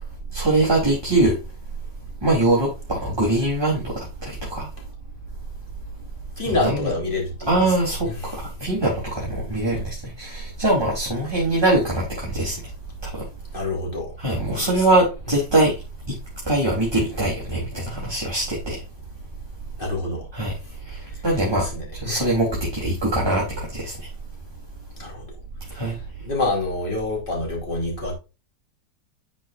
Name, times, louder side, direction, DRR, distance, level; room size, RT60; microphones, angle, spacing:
voice 1, 0.3-1.4 2.2-4.7 6.4-6.9 7.5-8.1 8.3-12.6 13.0-13.2 14.2-15.7 16.1-16.2 16.4-18.8 20.3-20.5 20.9-21.7 22.0-24.0 25.7-25.9, right 2 dB, 15° right, 3.3 m, -22 dB
voice 2, 6.4-7.7 8.0-8.3 9.7-9.8 13.5-14.1 14.5-14.8 19.8-20.3 21.4-22.2 25.0-25.2 26.2-28.1, left 2 dB, 25° left, 4.1 m, -27 dB
11.0 x 6.4 x 2.5 m
omnidirectional pair, 2.0 m